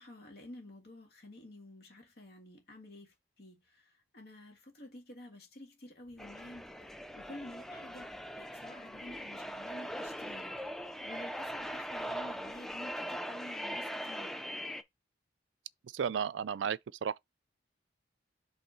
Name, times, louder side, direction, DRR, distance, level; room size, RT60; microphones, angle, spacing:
voice 1, 0.0-6.7 7.1-14.4, left 1 dB, 55° left, 1.8 m, -51 dB
sound 1, 6.0-13.0, equal, 80° left, 2.3 m, -66 dB
sound 2, 6.2-14.8, equal, ahead, 0.4 m, -41 dB
voice 2, 15.9-17.2, right 7 dB, 75° right, 0.4 m, -33 dB
5.3 x 3.4 x 5.6 m
head